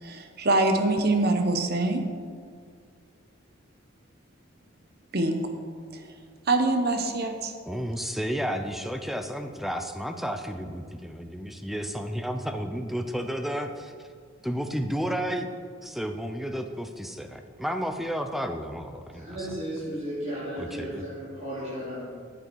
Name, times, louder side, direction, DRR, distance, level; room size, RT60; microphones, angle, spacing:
voice 1, 0.0-2.0 5.1-5.5 5.9-6.1 6.5-7.5, right 2 dB, 50° right, 6 dB, 1.1 m, -24 dB
voice 2, 7.7-13.9 14.4-15.5 15.8-19.5 20.6-21.0, equal, ahead, 7 dB, 0.6 m, -32 dB
voice 3, 19.1-22.1, equal, 35° right, -11 dB, 2.9 m, -34 dB
13.0 x 8.2 x 4.6 m, 2.1 s
head